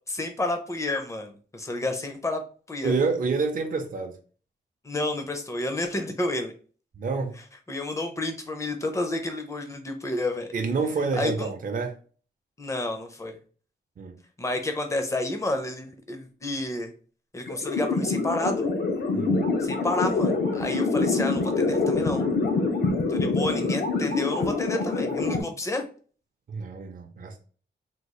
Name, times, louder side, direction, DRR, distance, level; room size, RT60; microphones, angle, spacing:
voice 1, 0.1-2.4 2.7-2.9 4.8-6.5 7.7-10.5 11.1-11.5 12.6-13.4 14.4-16.9 17.3-18.7 19.6-22.2 23.1-25.8, left 2 dB, 15° left, 0.5 m, -30 dB
voice 2, 2.8-4.1 7.0-7.4 10.5-12.0 14.0-14.1 19.1-19.4 26.5-27.4, right 4 dB, 45° right, 0.5 m, -28 dB
sound 1, 17.5-25.4, left 3 dB, 60° left, 0.6 m, -25 dB
3.6 x 2.3 x 3.0 m
wide cardioid pair, 155°, 19 cm